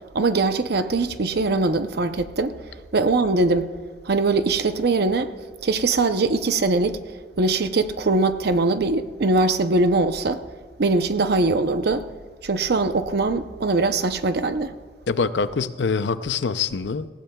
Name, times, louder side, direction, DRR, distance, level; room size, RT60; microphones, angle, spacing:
voice 1, 0.1-2.5 2.9-3.7 4.0-5.3 5.6-7.0 7.4-10.4 10.8-12.1 12.4-14.7, right 3 dB, 65° right, 0.7 m, -21 dB
voice 2, 15.1-17.1, left 5 dB, 85° left, 0.6 m, -24 dB
18.5 x 15.5 x 2.3 m
head